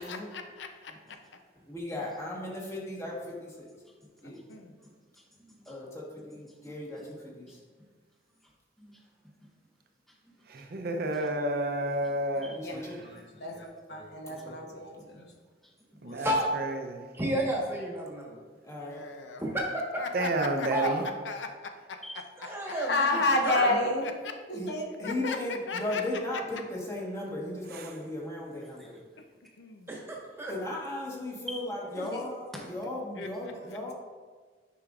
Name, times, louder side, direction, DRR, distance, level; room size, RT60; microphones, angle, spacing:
voice 1, 0.0-1.2 1.9-2.3 3.2-3.6 4.2-4.8 18.8-19.5 20.0-22.8 23.6-23.7 24.0-24.4 25.0-26.6 29.2-29.3 29.6-30.0 32.5-32.6 33.1-33.9, left 4 dB, 90° left, 6 dB, 0.6 m, -40 dB
voice 2, 1.6-3.7 4.2-4.4 5.6-7.6 12.5-13.1 14.3-14.6 18.6-19.0 23.6-23.8 24.5-24.7 25.0-29.0 30.5-33.9, left 1 dB, 15° left, -4 dB, 1.3 m, -36 dB
voice 3, 4.5-5.7 6.5-6.7 7.0-7.1 7.5-7.9 8.4-8.5 8.8-9.1 9.4-9.5 10.1-10.5 12.3-12.6 15.0-15.3 15.6-16.0 22.0-22.2 28.8-28.9 31.5-31.6 32.5-32.6, left 1 dB, ahead, -2 dB, 0.6 m, -48 dB
voice 4, 10.5-13.0 16.0-17.1 20.1-21.1 27.7-27.9, right 2 dB, 60° right, 5 dB, 0.6 m, -31 dB
voice 5, 12.6-15.3 16.1-16.2 22.7-24.1 24.5-24.8 32.0-32.2, left 2 dB, 65° left, 2 dB, 0.9 m, -30 dB
voice 6, 16.2-16.5 17.1-18.4 19.4-20.0 20.7-21.0 22.4-23.7 29.9-30.5, equal, 15° right, -3 dB, 1.2 m, -31 dB
9.8 x 5.1 x 2.4 m, 1.5 s
head